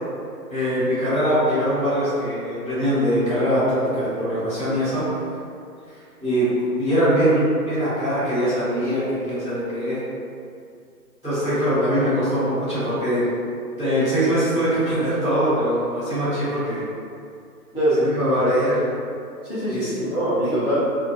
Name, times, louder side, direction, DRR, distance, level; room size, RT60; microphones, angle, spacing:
voice 1, 0.5-5.1 5.9-6.5 6.8-10.0 11.2-13.2 13.8-16.8 18.0-18.9 19.7-19.9 20.4-20.5, equal, 10° right, -21 dB, 1.2 m, -22 dB
voice 2, 19.4-20.9, right 1 dB, 40° left, -13 dB, 0.4 m, -23 dB
2.5 x 2.4 x 2.3 m, 2.4 s
hypercardioid pair, 170°, 50 cm